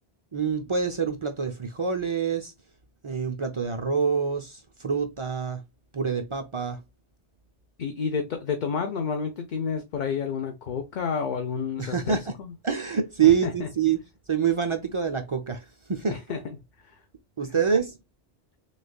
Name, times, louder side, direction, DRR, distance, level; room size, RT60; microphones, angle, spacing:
voice 1, 0.3-2.5 3.0-5.6 5.9-6.8 11.8-12.3 12.6-14.0 14.3-16.2 17.4-18.0, right 7 dB, 50° right, 0.3 m, -26 dB
voice 2, 7.8-12.5 13.4-13.7 16.1-16.6 16.8-17.0, left 6 dB, 50° left, 0.6 m, -30 dB
6.3 x 2.4 x 2.2 m
omnidirectional pair, 1.2 m